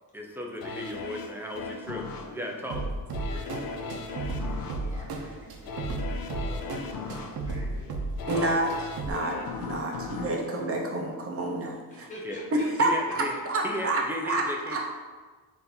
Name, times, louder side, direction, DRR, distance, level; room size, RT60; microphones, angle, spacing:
voice 1, 0.1-2.8 8.2-8.6 12.2-12.4 12.8-13.3 13.6-14.8, left 1 dB, 5° right, 0 dB, 0.4 m, -35 dB
sound 1, 0.6-11.6 12.0-12.1, left 4 dB, 65° left, 0.5 m, -39 dB
sound 2, 2.7-9.1, right 2 dB, 75° right, 0.6 m, -34 dB
voice 2, 3.3-7.9 11.9-13.1, equal, 20° left, -5 dB, 1.0 m, -46 dB
voice 3, 8.3-8.7 9.0-9.3 9.6-12.1 12.5-14.8, right 2 dB, 40° right, 0 dB, 0.7 m, -28 dB
3.8 x 2.7 x 4.2 m, 1.4 s
wide cardioid pair, 155°, 37 cm